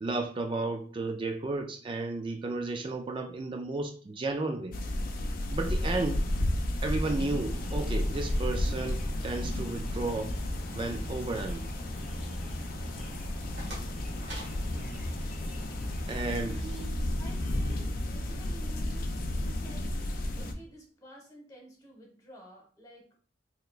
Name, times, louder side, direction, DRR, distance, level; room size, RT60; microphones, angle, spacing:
voice 1, 0.0-4.8 5.5-6.2 6.8-10.4 10.7-11.6 16.1-16.6, right 3 dB, 25° right, 0.3 m, -33 dB
sound 1, 4.7-20.5, left 1 dB, 50° left, 0.4 m, -33 dB
sound 2, 7.0-16.9, equal, 5° right, 0.9 m, -43 dB
sound 3, 13.1-15.9, right 1 dB, 75° right, 1.6 m, -47 dB
voice 2, 16.4-19.9 20.4-23.1, right 2 dB, 20° left, 1.2 m, -50 dB
3.4 x 2.9 x 2.4 m
head